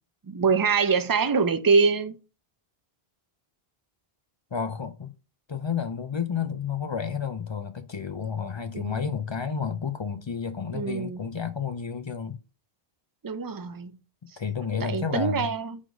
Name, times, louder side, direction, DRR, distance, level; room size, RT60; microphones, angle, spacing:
voice 1, 0.3-2.2 8.7-9.0 10.7-11.2 13.2-14.0 14.8-15.8, right 5 dB, 35° right, 0.3 m, -24 dB
voice 2, 4.5-5.1 5.5-12.4 14.4-15.5, left 6 dB, 45° left, 0.3 m, -31 dB
5.0 x 3.9 x 5.0 m
omnidirectional pair, 1.0 m